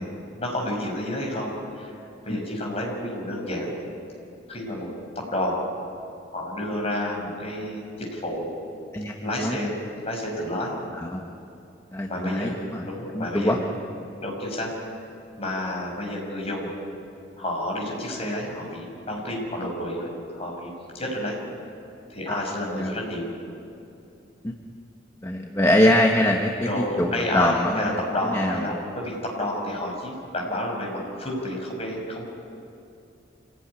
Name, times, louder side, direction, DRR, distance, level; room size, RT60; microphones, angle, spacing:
voice 1, 0.0-1.9 2.2-3.7 4.5-4.9 5.1-5.6 6.3-8.5 9.2-9.8 10.0-10.7 12.1-13.6 14.2-14.9 15.4-16.7 17.4-21.4 22.1-23.3 26.6-32.3, left 1 dB, 35° left, -1 dB, 6.1 m, -30 dB
voice 2, 8.9-9.6 10.9-11.2 11.9-12.9 13.1-13.6 22.3-22.4 22.8-23.0 24.4-24.5 25.2-28.0 28.3-28.6, left 1 dB, 15° left, 1 dB, 1.3 m, -23 dB
26.0 x 18.0 x 9.9 m, 2.7 s
head